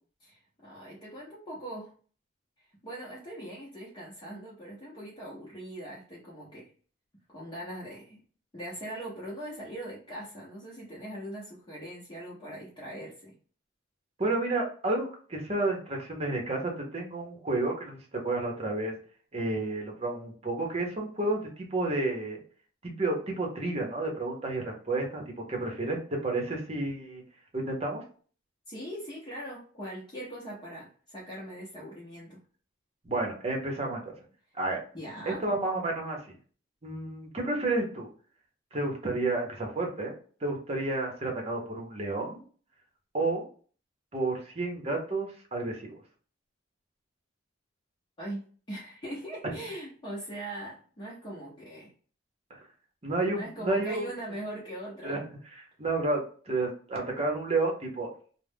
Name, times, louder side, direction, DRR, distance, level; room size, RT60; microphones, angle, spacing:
voice 1, 0.2-1.9 2.8-6.7 7.3-8.2 8.5-13.3 28.7-32.4 34.9-35.4 48.2-51.9 53.2-55.2, right 1 dB, 25° left, -6 dB, 0.7 m, -41 dB
voice 2, 14.2-18.9 19.3-22.4 22.8-25.2 25.5-27.2 27.5-28.0 33.0-34.1 34.6-34.8 35.3-36.3 36.8-38.1 38.7-40.1 40.4-42.4 43.1-43.4 44.1-46.0 52.5-52.6 53.0-54.1 55.0-55.2 55.6-58.1, right 2 dB, 35° right, 1 dB, 0.8 m, -31 dB
2.4 x 2.1 x 3.4 m, 0.42 s
head